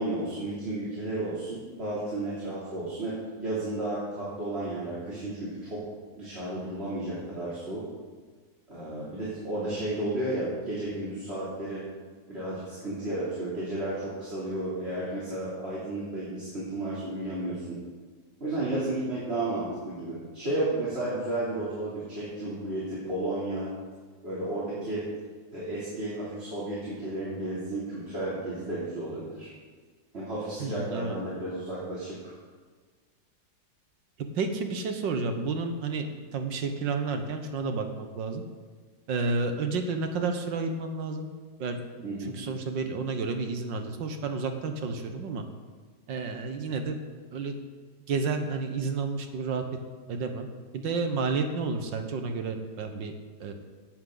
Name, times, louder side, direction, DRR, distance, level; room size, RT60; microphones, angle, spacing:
voice 1, 0.0-5.8 6.2-7.8 8.7-11.8 12.3-17.8 18.4-23.7 24.2-25.1 25.5-29.5 30.1-32.3 42.0-42.4, right 1 dB, 35° right, -9 dB, 3.6 m, -33 dB
voice 2, 30.6-31.2 34.4-36.1 36.3-38.4 39.1-41.3 41.6-41.8 42.2-45.4 46.1-47.0 47.3-47.6 48.1-49.6 50.1-50.5 50.7-53.1 53.4-53.5, right 4 dB, 80° right, 6 dB, 1.9 m, -30 dB
16.5 x 11.0 x 4.0 m, 1.5 s
omnidirectional pair, 2.0 m